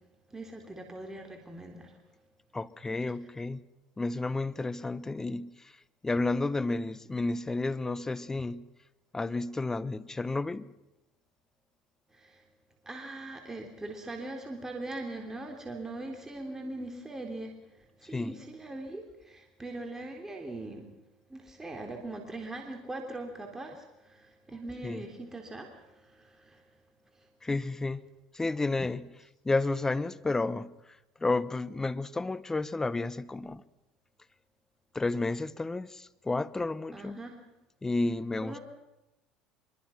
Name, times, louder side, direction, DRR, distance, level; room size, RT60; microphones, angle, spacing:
voice 1, 0.3-2.0 12.1-12.4 12.9-17.6 18.0-20.9 21.3-26.6 36.9-37.3 38.4-38.6, right 2 dB, 15° right, 3.6 m, -41 dB
voice 2, 2.5-3.6 4.0-5.7 6.0-8.6 9.1-10.7 18.1-18.3 24.8-25.0 27.4-28.0 28.3-29.1 29.4-30.7 31.2-33.6 34.9-37.2 37.8-38.6, left 3 dB, 15° left, 1.0 m, -31 dB
25.0 x 22.5 x 5.9 m
hypercardioid pair, 85°, 3 cm